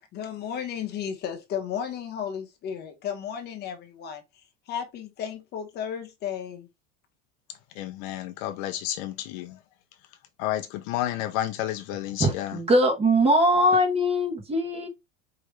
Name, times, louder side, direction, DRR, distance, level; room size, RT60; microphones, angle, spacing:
voice 1, 0.1-4.2 4.7-6.7, left 8 dB, 30° left, 1.0 m, -34 dB
voice 2, 7.8-9.6 10.4-12.6, left 13 dB, 50° left, 0.5 m, -31 dB
voice 3, 12.2-14.9, equal, 20° right, 1.3 m, -21 dB
4.8 x 3.1 x 3.1 m
cardioid pair, 170°, 33 cm